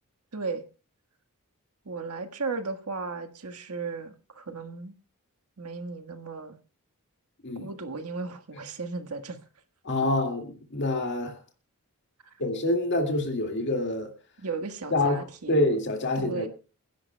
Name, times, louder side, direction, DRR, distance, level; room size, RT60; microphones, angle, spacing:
voice 1, 0.3-0.6 1.8-4.9 5.6-6.6 7.6-9.4 14.4-15.8 16.1-16.5, right 4 dB, 80° right, 1.5 m, -35 dB
voice 2, 9.8-11.4 12.4-14.1 14.9-16.5, left 2 dB, 55° left, 2.1 m, -26 dB
29.5 x 10.5 x 2.2 m
head